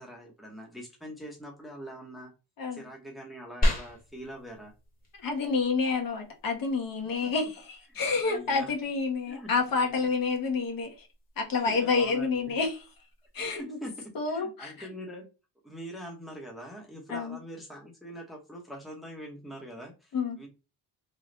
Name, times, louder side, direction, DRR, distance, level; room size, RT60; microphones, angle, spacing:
voice 1, 0.0-2.3 2.7-4.7 7.2-7.3 8.2-8.7 9.3-10.0 11.7-12.5 13.4-13.9 14.3-15.3 15.6-20.5, equal, ahead, 0.9 m, -43 dB
sound 1, 3.6-13.6, equal, 20° left, 1.2 m, -37 dB
voice 2, 5.2-11.1 11.4-12.8 13.3-13.8 14.1-14.9 17.1-17.4 20.1-20.4, left 4 dB, 55° left, 1.1 m, -29 dB
3.3 x 2.3 x 3.8 m
cardioid pair, 135°, 40 cm